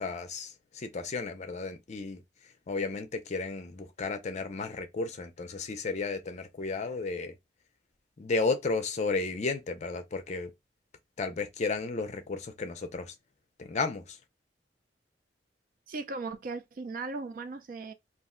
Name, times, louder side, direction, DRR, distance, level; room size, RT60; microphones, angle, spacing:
voice 1, 0.0-7.4 8.2-10.5 11.2-13.2 13.6-14.2, left 3 dB, 40° left, 0.5 m, -33 dB
voice 2, 15.9-17.9, right 3 dB, 50° right, 0.4 m, -37 dB
2.4 x 2.1 x 3.6 m
head